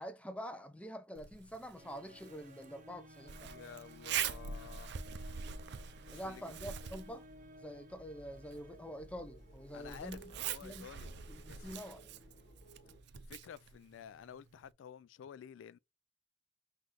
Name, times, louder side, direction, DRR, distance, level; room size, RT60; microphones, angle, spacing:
voice 1, 0.0-3.5 6.1-7.3 7.6-10.3 10.6-10.9 11.3-12.1, equal, 5° left, 0.5 m, -46 dB
Zipper (clothing), 1.2-14.7, right 8 dB, 60° right, 0.5 m, -45 dB
sound 1, 1.8-10.1, equal, 40° right, 0.8 m, -57 dB
sound 2, 3.3-13.0, right 1 dB, 40° left, 3.2 m, -60 dB
voice 2, 3.4-5.0 6.1-6.4 9.7-11.1 11.5-11.7 13.3-15.8, left 8 dB, 90° left, 0.3 m, -51 dB
5.8 x 2.6 x 3.1 m
head